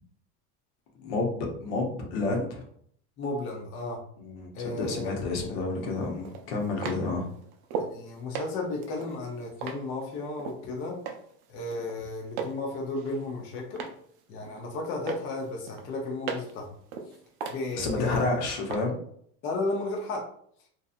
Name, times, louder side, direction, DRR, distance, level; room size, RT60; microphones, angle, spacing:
voice 1, 1.0-2.6 4.2-7.3 17.8-18.9, left 3 dB, 70° left, 1 dB, 0.9 m, -30 dB
voice 2, 3.2-4.0 4.5-5.6 7.8-11.0 11.5-13.8 14.3-16.8 17.5-18.2 19.4-20.2, left 2 dB, 40° left, -1 dB, 0.6 m, -34 dB
sound 1, 5.2-5.3 6.2-8.0 8.3-10.6 11.0-11.4 11.7-12.6 13.0-14.0 14.4-14.8 15.1-16.6 16.9-18.3 18.7-18.8, right 6 dB, 60° right, 0.5 m, -37 dB
2.7 x 2.3 x 2.4 m, 0.64 s
supercardioid pair, 130°, 32 cm